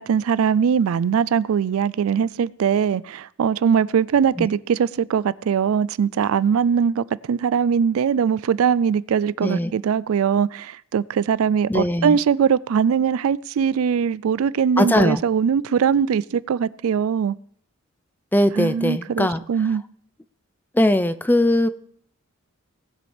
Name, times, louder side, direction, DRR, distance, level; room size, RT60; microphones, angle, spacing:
voice 1, 0.0-17.4 18.5-19.8, right 7 dB, 80° right, 0.3 m, -21 dB
voice 2, 11.7-12.2 14.8-15.2 18.3-19.4 20.7-21.7, left 1 dB, 10° left, 0.4 m, -20 dB
19.0 x 7.7 x 3.3 m
head